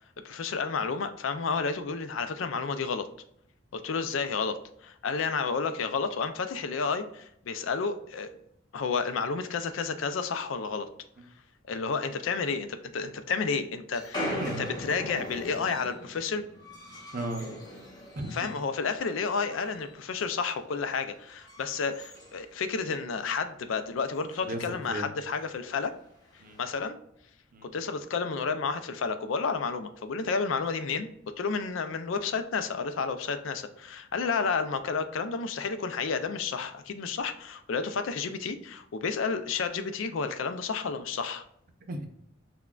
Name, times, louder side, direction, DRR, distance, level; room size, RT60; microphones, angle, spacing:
voice 1, 0.2-3.1 3.7-8.3 8.7-10.9 11.7-14.4 14.9-16.4 18.3-25.9 26.6-27.0 27.7-31.1 31.4-41.4, left 5 dB, 80° left, 10 dB, 0.4 m, -31 dB
sound 1, 13.9-18.7 19.0-20.0 20.3-20.6 21.1-23.1 23.4-23.5 23.7-23.8 24.1-24.5 25.4-25.5 26.3-26.7, left 1 dB, 20° left, 1.1 m, -40 dB
voice 2, 17.1-17.5 18.2-18.5 24.4-25.1 26.4-26.6 27.5-27.7 41.9-42.1, right 1 dB, 45° right, 5 dB, 0.6 m, -36 dB
5.8 x 2.2 x 2.3 m, 0.73 s
head